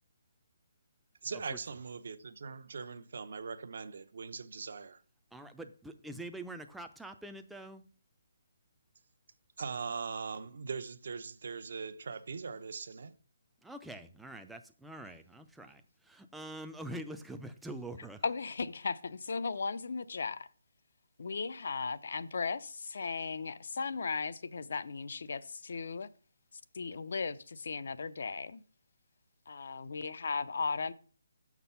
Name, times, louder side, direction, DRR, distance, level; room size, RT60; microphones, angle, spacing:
voice 1, 1.2-5.0 9.6-13.1, right 5 dB, 60° right, 0.8 m, -41 dB
voice 2, 5.3-7.8 13.6-18.2, right 1 dB, ahead, 0.5 m, -45 dB
voice 3, 18.2-20.5 21.2-26.1 26.7-28.6 29.5-30.9, left 4 dB, 60° left, 0.6 m, -36 dB
6.5 x 6.0 x 5.6 m
hypercardioid pair, 160°, 0 cm